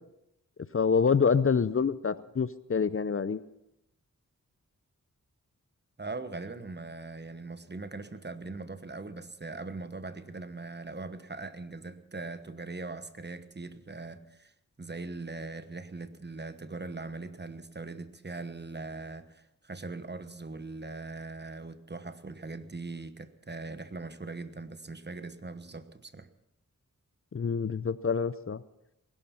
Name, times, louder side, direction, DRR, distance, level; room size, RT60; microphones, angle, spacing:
voice 1, 0.7-3.4 27.3-28.6, left 5 dB, 40° left, 16 dB, 0.6 m, -26 dB
voice 2, 6.0-14.5 14.8-26.3, right 3 dB, 30° right, 12 dB, 1.2 m, -41 dB
20.0 x 11.5 x 5.8 m, 0.85 s
cardioid pair, 55°, 33 cm